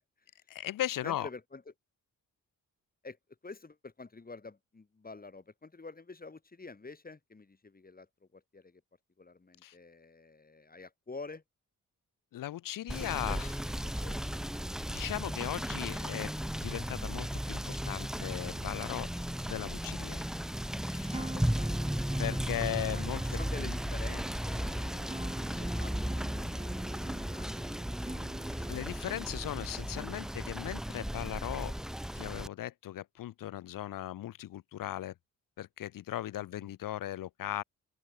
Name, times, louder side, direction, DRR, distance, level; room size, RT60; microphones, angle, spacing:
voice 1, 0.5-1.3 9.6-9.7 12.3-13.5 14.9-16.3 16.6-19.1 19.5-20.2 20.9-21.1 22.2-23.2 28.7-31.7 32.1-35.1 35.6-37.6, left 13 dB, 75° left, 0.6 m, -37 dB
voice 2, 1.0-1.6 3.0-3.2 3.4-8.1 8.3-8.8 9.2-11.4 13.0-14.4 21.1-21.8 22.9-25.3 25.6-26.0 26.3-27.6 36.3-36.7, left 3 dB, 25° left, 6.0 m, -48 dB
Rain / Motor vehicle (road), 12.9-32.5, equal, ahead, 0.6 m, -35 dB
Acoustic guitar, 21.1-29.0, right 2 dB, 15° right, 5.9 m, -46 dB
open air
wide cardioid pair, 125°, 33 cm